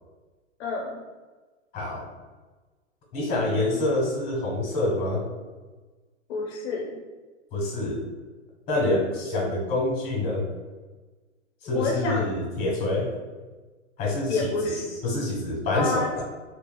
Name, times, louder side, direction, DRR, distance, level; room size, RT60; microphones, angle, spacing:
voice 1, 0.6-1.0 6.3-7.0 8.8-9.1 11.7-12.3 14.3-15.0 15.7-16.1, left 3 dB, 65° left, 0 dB, 0.5 m, -29 dB
voice 2, 1.7-2.1 3.1-5.2 7.5-8.0 8.7-10.5 11.6-13.1 14.0-14.7 15.0-16.2, left 2 dB, 25° left, -1 dB, 1.2 m, -26 dB
2.8 x 2.3 x 2.2 m, 1.3 s
hypercardioid pair, 135°, 36 cm